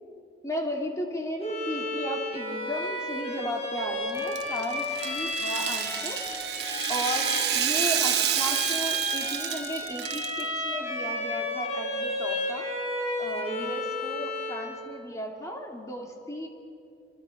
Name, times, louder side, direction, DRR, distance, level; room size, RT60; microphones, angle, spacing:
voice 1, 0.4-6.2 6.9-12.7 13.2-16.5, equal, 20° left, 1 dB, 2.6 m, -35 dB
Bowed string instrument, 1.4-14.8, left 1 dB, 35° left, 6.0 m, -32 dB
Rattle (instrument), 4.2-10.4, right 10 dB, 65° right, 1.2 m, -29 dB
29.5 x 24.5 x 5.2 m, 2.5 s
head